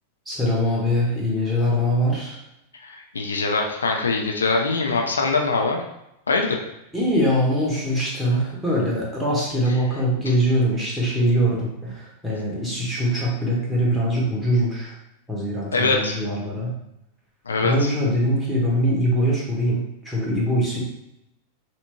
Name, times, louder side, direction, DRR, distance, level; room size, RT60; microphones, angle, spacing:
voice 1, 0.3-2.4 6.9-14.9 15.3-16.7 17.6-20.8, equal, 5° right, -5 dB, 1.5 m, -22 dB
voice 2, 2.9-5.8 6.3-6.6 15.7-16.2 17.5-17.9, left 3 dB, 70° left, 1 dB, 0.5 m, -22 dB
5.8 x 2.9 x 2.3 m, 0.85 s
figure-of-eight pair, 90°, 0 cm